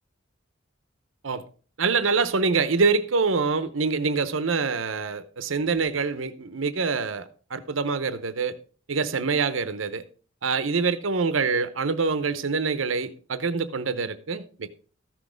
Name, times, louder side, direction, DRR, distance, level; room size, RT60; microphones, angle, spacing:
voice 1, 1.8-8.5 8.9-10.0 10.4-14.7, right 4 dB, 85° right, 0.8 m, -25 dB
14.0 x 6.3 x 5.1 m
head